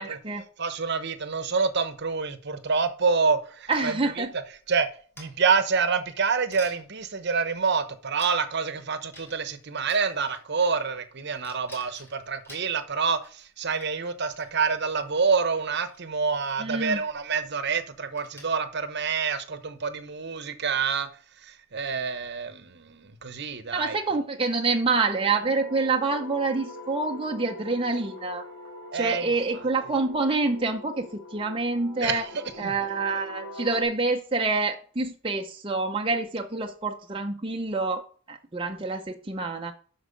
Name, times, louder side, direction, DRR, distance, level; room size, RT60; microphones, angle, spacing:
voice 1, 0.0-0.4 3.7-4.3 16.6-17.0 23.7-28.5 28.9-32.2 32.6-39.7, right 3 dB, 25° right, 0.6 m, -27 dB
voice 2, 0.6-4.4 4.7-4.9 5.2-21.1 21.4-24.0 28.9-29.6 32.0-32.7, right 5 dB, 50° right, 0.9 m, -27 dB
sound 1, 3.7-4.2 5.2-5.6 6.1-6.2 6.5-6.8 7.6-7.7 8.2-8.7 9.1-9.6 9.8-10.9 11.4-13.4 13.7-13.9 14.3-15.0 15.7-16.0 16.3-16.6 16.9-17.1 17.4-17.7 18.2-18.7, left 1 dB, 10° left, 2.9 m, -49 dB
sound 2, 24.9-33.8, left 1 dB, 75° left, 3.5 m, -43 dB
8.3 x 6.2 x 5.1 m
head